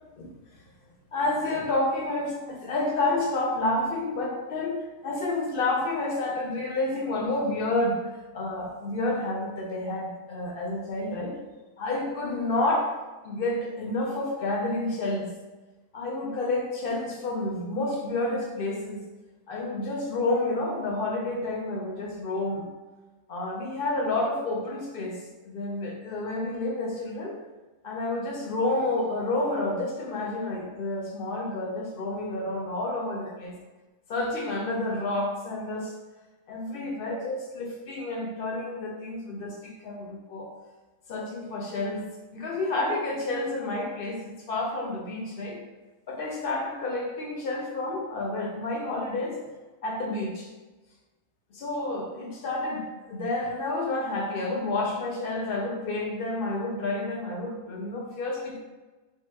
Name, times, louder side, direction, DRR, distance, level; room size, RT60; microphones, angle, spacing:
voice 1, 1.1-8.0 8.3-11.4 11.8-12.9 13.2-15.3 15.9-19.0 19.5-22.7 23.3-25.2 25.4-27.4 27.8-33.5 34.1-35.9 36.5-40.5 41.1-45.6 46.1-49.4 49.8-50.5 51.5-58.6, left 2 dB, 55° left, -1 dB, 0.6 m, -29 dB
3.6 x 2.7 x 2.2 m, 1.2 s
omnidirectional pair, 1.4 m